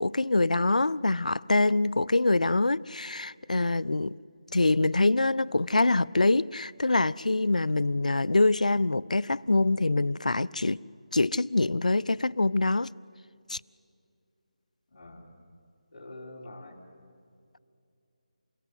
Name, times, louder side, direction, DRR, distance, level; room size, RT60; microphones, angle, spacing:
voice 1, 0.0-4.2 4.5-10.8 11.1-12.9 13.5-13.6, left 2 dB, 85° left, 0.5 m, -25 dB
voice 2, 14.9-15.3 15.9-16.8, left 2 dB, 45° left, 3.7 m, -45 dB
29.0 x 16.5 x 8.2 m
figure-of-eight pair, 165°, 4 cm